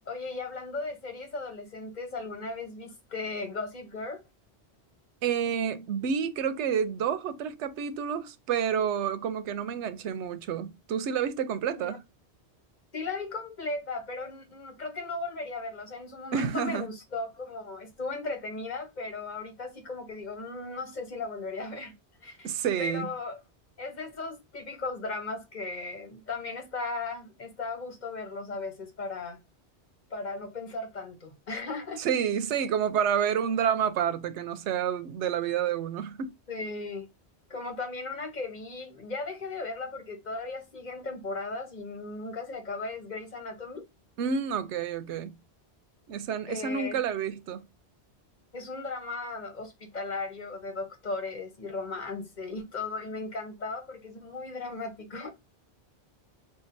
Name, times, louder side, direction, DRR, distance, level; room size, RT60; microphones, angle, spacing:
voice 1, 0.0-4.2 11.8-12.0 12.9-21.9 22.2-22.5 22.8-23.4 23.8-29.4 30.1-32.1 36.5-37.1 37.5-43.8 46.5-47.0 48.5-55.3, left 3 dB, 45° left, 1.1 m, -36 dB
voice 2, 5.2-12.0 16.3-16.9 22.4-23.1 32.0-36.3 44.2-45.3 46.1-47.7, right 8 dB, 90° right, 0.9 m, -29 dB
5.6 x 2.3 x 2.6 m
omnidirectional pair, 1.1 m